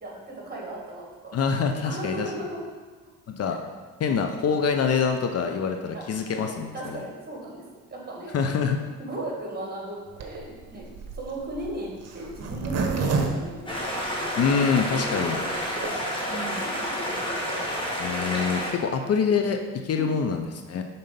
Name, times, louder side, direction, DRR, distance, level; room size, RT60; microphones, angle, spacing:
voice 1, 0.0-1.4 1.8-2.7 3.5-3.6 4.1-4.3 5.9-8.6 9.0-10.9 11.1-14.3 15.3-16.0 16.3-16.8 19.9-20.2, right 2 dB, 30° right, -3 dB, 2.0 m, -37 dB
voice 2, 1.3-2.3 3.3-3.6 4.0-7.0 8.3-8.8 14.4-15.4 18.0-20.8, left 6 dB, 55° left, 5 dB, 0.6 m, -25 dB
Zipper (clothing), 10.1-14.5 15.0-15.1 15.2-15.3 15.5-15.9, right 4 dB, 55° right, 0.9 m, -30 dB
sound 1, 13.7-18.7, equal, 15° left, 1.5 m, -29 dB
5.7 x 4.0 x 5.2 m, 1.3 s
cardioid pair, 90°, 30 cm